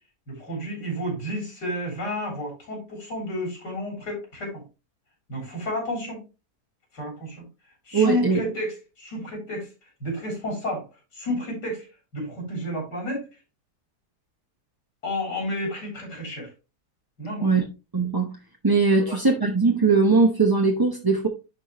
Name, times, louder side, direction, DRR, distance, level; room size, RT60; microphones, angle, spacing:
voice 1, 0.3-4.6 5.3-6.2 6.9-7.4 7.9-9.7 10.0-10.9 11.1-11.9 12.1-13.3 15.0-16.5 17.2-17.5 19.1-19.2, left 1 dB, 80° left, 4.2 m, -31 dB
voice 2, 7.9-8.4 17.4-17.6 17.9-18.3 18.6-21.3, right 4 dB, 25° right, 0.5 m, -20 dB
10.5 x 4.4 x 3.0 m
omnidirectional pair, 1.8 m